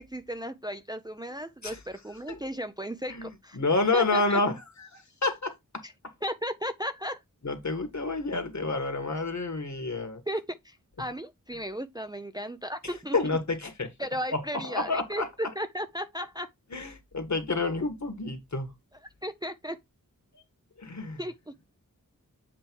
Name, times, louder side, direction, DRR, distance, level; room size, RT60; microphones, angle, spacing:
voice 1, 0.0-3.6 3.9-4.4 5.8-5.9 6.2-7.2 10.3-13.2 14.0-16.5 19.2-19.8 21.2-21.5, equal, 10° right, 0.5 m, -35 dB
voice 2, 3.5-5.5 7.4-10.2 13.1-13.9 14.3-14.4 14.7-15.3 16.7-18.7 20.8-21.2, left 3 dB, 55° left, 1.7 m, -29 dB
7.6 x 3.1 x 4.6 m
wide cardioid pair, 70°, 34 cm